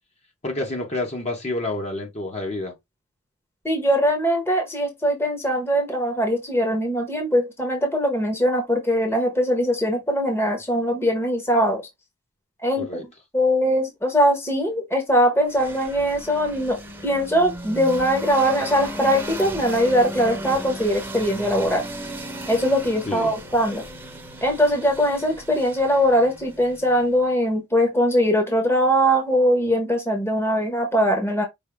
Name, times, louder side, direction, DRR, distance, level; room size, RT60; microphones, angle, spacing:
voice 1, 0.4-2.7 12.8-13.0 23.1-23.3, left 2 dB, 30° left, 1.3 m, -28 dB
voice 2, 3.6-11.8 12.6-13.1 13.3-21.8 22.5-23.8 24.4-31.4, equal, 10° left, 1.2 m, -21 dB
sound 1, 15.5-27.2, right 1 dB, 10° right, 1.1 m, -36 dB
5.4 x 2.9 x 3.4 m
head